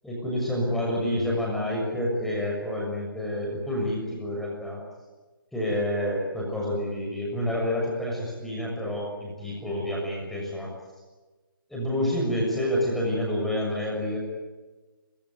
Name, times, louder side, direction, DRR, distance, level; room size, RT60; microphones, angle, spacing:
voice 1, 0.0-4.8 5.5-10.7 11.7-14.2, left 1 dB, ahead, -3 dB, 6.6 m, -28 dB
30.0 x 16.5 x 9.4 m, 1.2 s
figure-of-eight pair, 145°, 12 cm